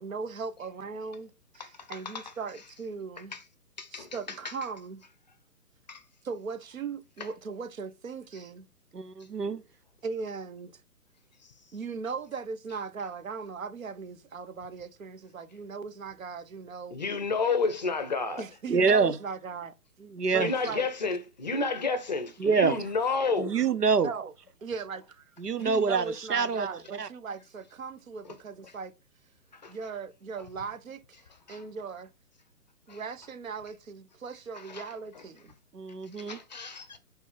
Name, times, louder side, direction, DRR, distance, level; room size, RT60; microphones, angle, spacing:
voice 1, 0.0-3.4 3.9-5.0 6.2-8.7 10.0-10.8 11.7-17.0 18.4-19.7 20.3-20.9 22.4-22.9 24.0-24.3 24.6-25.3 25.6-28.9 29.7-31.2 31.5-32.1 32.9-35.5, right 5 dB, 60° right, 1.0 m, -38 dB
voice 2, 1.6-2.3 3.3-3.4 3.8-4.5 5.9-6.0 16.9-18.4 20.3-23.5 26.4-26.5 29.5-29.7 31.5-31.6 32.9-33.0 34.6-34.8 36.2-37.0, left 4 dB, 30° left, 0.6 m, -31 dB
voice 3, 8.9-9.6 18.7-19.1 20.1-20.5 22.4-22.7 23.4-24.1 25.4-26.7 27.0-27.1 35.7-36.4, right 5 dB, 85° right, 0.9 m, -26 dB
4.7 x 4.0 x 5.2 m
figure-of-eight pair, 135°, 46 cm